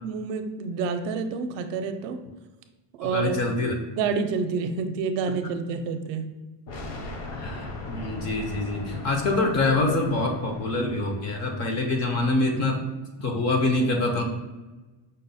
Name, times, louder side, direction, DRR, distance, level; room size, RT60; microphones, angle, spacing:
voice 1, 0.0-2.2 3.0-3.4 3.9-6.2, right 5 dB, 70° right, 7 dB, 0.5 m, -28 dB
voice 2, 3.1-3.8 7.3-12.8 13.2-14.2, left 2 dB, 35° left, 2 dB, 0.5 m, -25 dB
sound 1, 6.7-11.5, left 1 dB, 60° left, 0.9 m, -39 dB
5.2 x 2.1 x 4.0 m, 1.2 s
cardioid pair, 175°, 48 cm